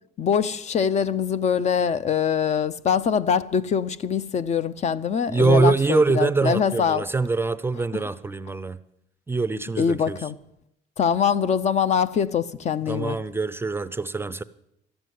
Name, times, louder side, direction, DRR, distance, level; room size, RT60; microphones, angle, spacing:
voice 1, 0.2-7.1 7.9-8.0 9.8-10.4 11.0-13.2, left 7 dB, 40° left, 0.6 m, -23 dB
voice 2, 5.3-8.8 9.3-10.2 12.9-14.4, right 4 dB, 15° right, 0.5 m, -23 dB
12.5 x 7.9 x 9.3 m
cardioid pair, 110°, 17 cm